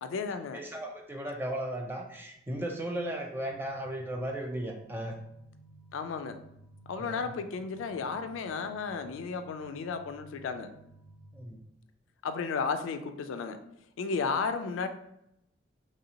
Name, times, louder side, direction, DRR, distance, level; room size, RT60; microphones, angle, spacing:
voice 1, 0.0-0.6 5.9-6.4 6.9-10.7 12.2-13.6 14.0-14.9, left 5 dB, 85° left, 9 dB, 0.3 m, -33 dB
voice 2, 0.5-5.2 7.0-7.3 11.3-11.6, right 1 dB, 10° right, 2 dB, 0.3 m, -36 dB
sound 1, 3.5-11.5, right 2 dB, 85° right, 0.6 m, -56 dB
3.2 x 2.6 x 2.8 m, 0.80 s
head